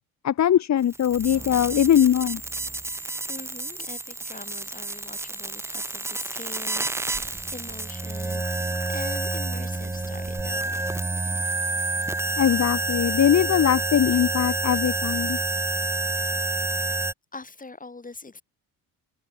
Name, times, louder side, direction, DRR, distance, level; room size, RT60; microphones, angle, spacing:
voice 1, 0.2-2.4 12.4-15.4, left 10 dB, 40° left, 1.0 m, -21 dB
sound 1, 0.8-17.1, right 2 dB, 5° right, 0.4 m, -29 dB
voice 2, 3.3-10.9 16.0-16.3 17.3-18.4, left 3 dB, 20° left, 7.0 m, -43 dB
cardioid pair, 95°, 41 cm